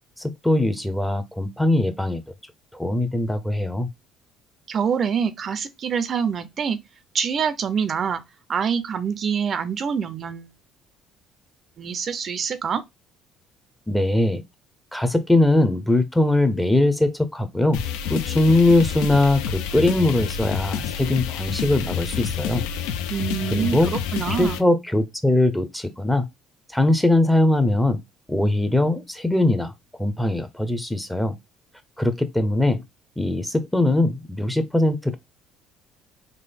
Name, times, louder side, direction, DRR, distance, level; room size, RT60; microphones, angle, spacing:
voice 1, 0.2-2.2 2.7-3.9 13.9-14.4 14.9-17.8 18.1-22.6 23.5-23.9 24.4-26.3 26.7-28.0 28.3-29.7 30.0-31.4 32.0-32.8 33.2-35.2, left 1 dB, 5° left, 0.6 m, -21 dB
voice 2, 4.7-6.8 7.1-8.2 8.5-10.5 11.8-12.8 23.1-24.6, right 7 dB, 45° right, 0.4 m, -25 dB
sound 1, 17.7-24.6, left 8 dB, 90° left, 0.4 m, -28 dB
3.7 x 2.1 x 3.4 m
supercardioid pair, 95°, 0 cm